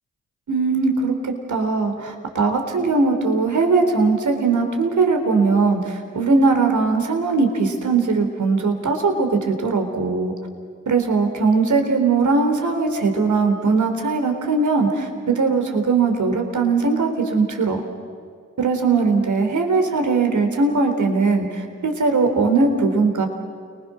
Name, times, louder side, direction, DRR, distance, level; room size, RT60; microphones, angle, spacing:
voice 1, 0.5-10.3 10.9-17.8 18.6-23.3, right 4 dB, 55° right, 4 dB, 4.0 m, -20 dB
29.5 x 20.5 x 6.4 m, 2.1 s
hypercardioid pair, 40°, 35 cm